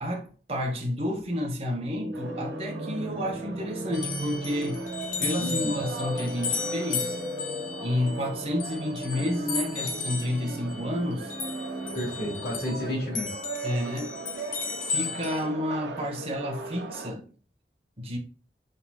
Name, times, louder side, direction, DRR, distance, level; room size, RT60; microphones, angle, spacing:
voice 1, 0.0-4.8 5.2-7.2 7.8-11.3 13.6-14.2 14.8-17.3 18.0-18.2, left 1 dB, 35° right, 1.1 m, -30 dB
sound 1, 1.9-12.9, right 1 dB, 15° right, 1.3 m, -37 dB
sound 2, 2.1-17.1, right 3 dB, 90° right, 0.6 m, -40 dB
sound 3, 3.9-12.8 13.1-15.4, left 5 dB, 45° left, 0.8 m, -35 dB
voice 2, 5.4-5.8 11.9-13.4, left 1 dB, 70° left, 2.1 m, -31 dB
5.7 x 3.8 x 2.3 m
head